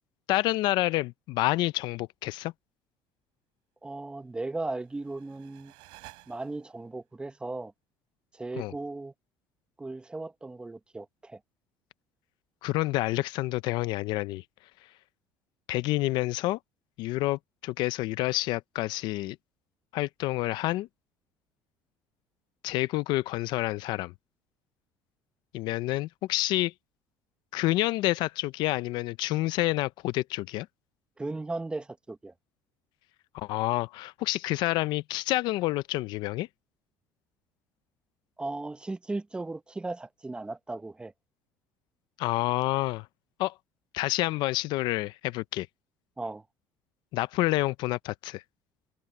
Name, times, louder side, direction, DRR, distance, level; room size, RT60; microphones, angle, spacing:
voice 1, 0.3-2.5 8.6-8.7 12.6-14.4 15.7-16.6 17.0-19.4 19.9-20.9 22.6-24.1 25.5-26.7 27.5-30.7 33.3-36.5 42.2-43.1 43.4-43.5 43.9-45.7 47.1-48.4, left 18 dB, 70° left, 0.5 m, -28 dB
voice 2, 3.8-5.7 6.3-7.7 8.3-9.1 9.8-11.4 31.2-32.3 38.4-41.1 46.2-46.4, right 2 dB, 10° right, 1.0 m, -36 dB
sound 1, 4.5-6.9, right 24 dB, 80° right, 7.7 m, -54 dB
cardioid pair, 125°, 8 cm